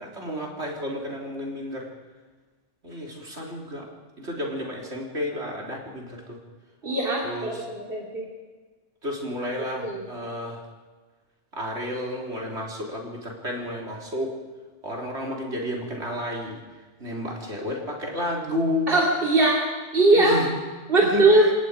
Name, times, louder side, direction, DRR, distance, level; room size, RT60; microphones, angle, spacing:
voice 1, 0.0-1.9 2.8-3.9 4.2-6.4 7.2-7.6 9.0-10.6 11.5-14.3 14.8-16.6 17.0-18.9 20.1-20.5 21.0-21.5, left 1 dB, 65° right, -1 dB, 4.1 m, -31 dB
voice 2, 6.8-8.3 9.8-10.0 18.9-19.7 19.9-20.4 20.9-21.5, right 2 dB, 50° right, -2 dB, 3.4 m, -20 dB
29.5 x 17.5 x 5.1 m, 1.3 s
omnidirectional pair, 1.2 m